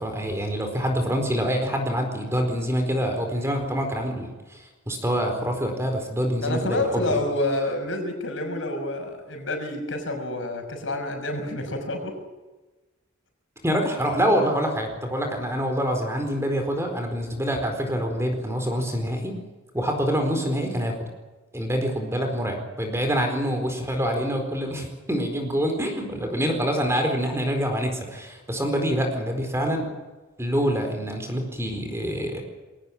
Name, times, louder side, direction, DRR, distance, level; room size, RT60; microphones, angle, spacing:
voice 1, 0.0-4.3 4.9-7.2 13.6-19.3 19.7-20.9 21.5-29.9 30.4-32.4, equal, 15° right, 4 dB, 4.4 m, -26 dB
voice 2, 6.4-12.2, left 2 dB, 65° left, 4 dB, 6.0 m, -28 dB
22.5 x 18.0 x 8.8 m, 1.2 s
head